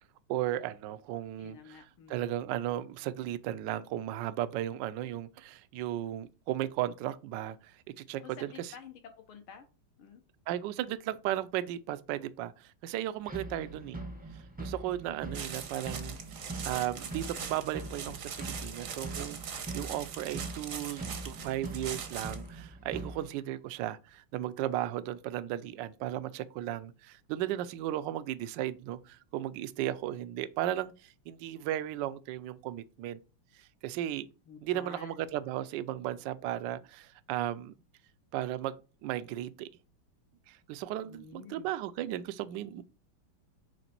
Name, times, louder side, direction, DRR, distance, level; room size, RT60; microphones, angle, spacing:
voice 1, 0.3-1.6 2.1-8.7 10.5-14.0 14.3-33.2 33.5-34.3 34.6-37.7 38.3-38.8 39.0-39.7 40.5-42.8, right 13 dB, 75° right, 1.1 m, -35 dB
voice 2, 1.4-2.3 8.2-9.7 10.0-10.2 13.5-14.0 34.5-35.3 41.1-41.7, left 6 dB, 80° left, 2.0 m, -50 dB
sound 1, 13.2-23.3, right 2 dB, 10° right, 0.5 m, -42 dB
sound 2, 15.3-22.5, right 6 dB, 55° right, 1.0 m, -41 dB
8.0 x 3.3 x 4.4 m
omnidirectional pair, 2.3 m